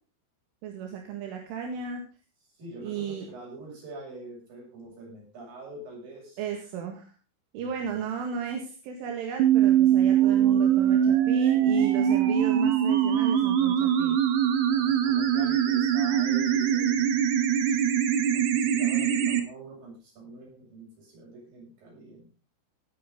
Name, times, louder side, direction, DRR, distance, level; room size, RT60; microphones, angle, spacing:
voice 1, 0.6-2.1 2.8-3.3 6.4-7.1 7.5-14.2, right 7 dB, 80° right, 2 dB, 4.5 m, -35 dB
voice 2, 2.6-6.4 7.6-8.0 14.7-17.2 17.7-17.8 18.3-22.3, right 2 dB, 45° right, -1 dB, 9.0 m, -44 dB
sound 1, 9.4-19.4, right 9 dB, 60° right, 2.2 m, -22 dB
19.0 x 9.2 x 3.9 m, 0.35 s
omnidirectional pair, 5.6 m